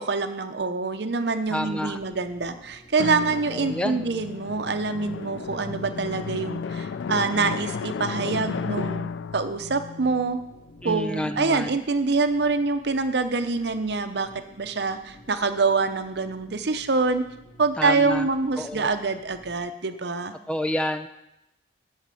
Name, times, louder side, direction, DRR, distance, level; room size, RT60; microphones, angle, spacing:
voice 1, 0.0-10.4 10.8-14.3 14.6-17.2 17.6-20.3, right 4 dB, 60° right, 9 dB, 0.7 m, -25 dB
sound 1, 1.5-19.6, equal, 60° left, 2.1 m, -53 dB
voice 2, 1.5-2.0 3.5-4.0 10.8-11.8 17.8-18.3 18.6-18.9 20.5-21.1, left 1 dB, 5° left, 9 dB, 0.3 m, -29 dB
Drum, 3.0-11.3, left 5 dB, 80° left, 0.3 m, -33 dB
8.4 x 6.5 x 7.5 m, 0.89 s
head